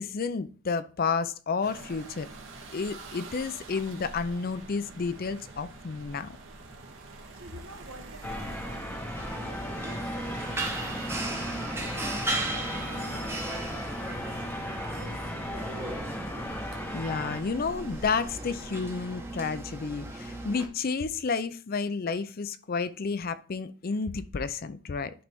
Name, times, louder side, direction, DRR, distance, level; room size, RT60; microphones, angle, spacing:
voice 1, 0.0-2.3 2.7-6.4 16.9-25.1, left 5 dB, 40° left, 13 dB, 0.4 m, -31 dB
sound 1, 1.6-18.8, right 2 dB, 60° right, 1.3 m, -46 dB
voice 2, 7.0-14.4 14.7-16.2, right 1 dB, 80° right, 4 dB, 1.5 m, -50 dB
sound 2, 8.2-17.4, left 1 dB, 10° left, 0.8 m, -37 dB
sound 3, 9.1-20.7, right 2 dB, 10° right, 0.9 m, -36 dB
11.0 x 3.9 x 3.5 m, 0.38 s
head